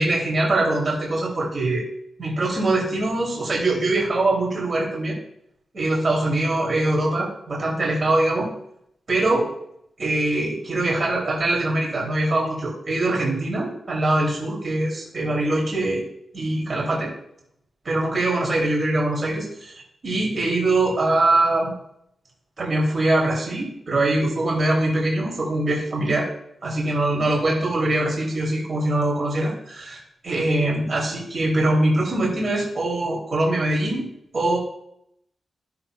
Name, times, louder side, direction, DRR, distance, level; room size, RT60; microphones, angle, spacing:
voice 1, 0.0-1.8 2.2-5.1 5.7-8.5 9.1-9.5 10.0-16.0 16.3-17.1 17.8-21.7 22.6-26.3 26.6-34.1 34.3-34.6, right 2 dB, 40° right, -3 dB, 2.7 m, -23 dB
14.5 x 6.1 x 2.2 m, 0.75 s
wide cardioid pair, 170°, 0 cm